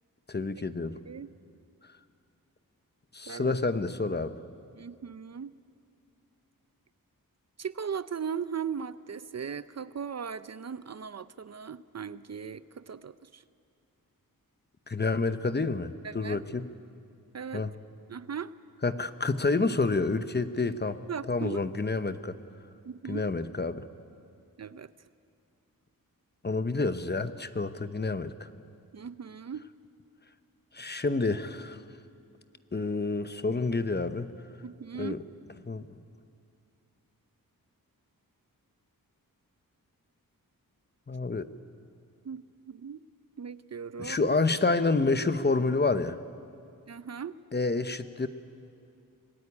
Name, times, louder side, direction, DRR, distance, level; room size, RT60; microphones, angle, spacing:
voice 1, 0.3-1.0 3.1-4.4 14.9-16.7 17.5-17.7 18.8-21.0 21.3-22.4 23.1-23.8 26.4-28.5 30.7-31.8 32.7-34.3 35.0-35.2 35.6-35.9 41.1-41.5 44.0-46.2 47.5-48.3, left 3 dB, 30° left, 11 dB, 0.9 m, -28 dB
voice 2, 3.3-3.6 4.7-5.6 7.6-13.4 16.0-16.4 17.3-17.7 18.1-18.5 21.1-21.6 22.8-23.3 24.6-24.9 28.9-29.7 34.6-35.2 42.2-43.0 43.4-44.3 46.9-47.4, right 7 dB, 45° right, 15 dB, 0.6 m, -38 dB
24.0 x 19.0 x 9.8 m, 2.4 s
wide cardioid pair, 100°, 35 cm